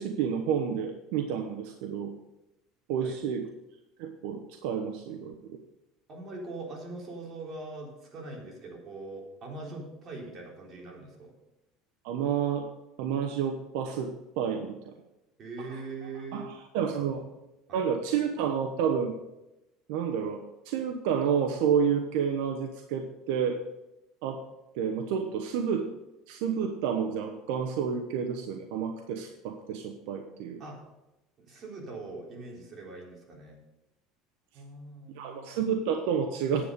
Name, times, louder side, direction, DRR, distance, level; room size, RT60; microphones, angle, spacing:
voice 1, 0.0-2.1 2.9-3.4 4.0-5.3 12.0-12.7 13.0-14.1 14.4-14.8 15.7-15.8 16.3-17.2 17.7-19.1 19.9-23.6 24.2-24.4 24.7-25.9 26.3-30.6 35.2-36.7, right 7 dB, 75° right, 4 dB, 1.0 m, -30 dB
voice 2, 6.1-11.3 15.4-16.5 16.9-17.2 17.7-17.8 30.6-30.8 31.5-33.6 34.5-35.6, right 3 dB, 40° right, -1 dB, 3.6 m, -42 dB
10.0 x 8.2 x 5.2 m, 0.94 s
supercardioid pair, 130°, 0 cm